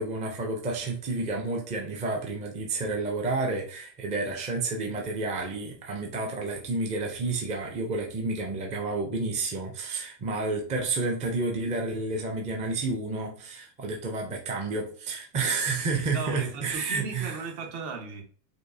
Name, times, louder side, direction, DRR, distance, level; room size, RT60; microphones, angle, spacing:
voice 1, 0.0-17.4, right 3 dB, 15° right, 0.5 m, -30 dB
voice 2, 16.1-18.2, right 4 dB, 55° right, 1.3 m, -36 dB
5.1 x 2.1 x 2.7 m
supercardioid pair, 125°, 50 cm